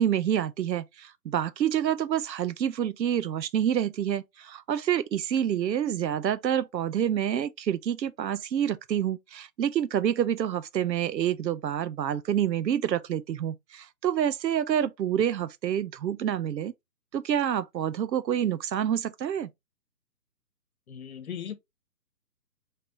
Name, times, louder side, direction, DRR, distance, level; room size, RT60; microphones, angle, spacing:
voice 1, 0.0-16.7 17.1-19.5, right 9 dB, 85° right, 0.6 m, -27 dB
voice 2, 20.9-21.5, left 8 dB, 60° left, 1.0 m, -37 dB
4.3 x 3.2 x 3.0 m
figure-of-eight pair, 150°, 49 cm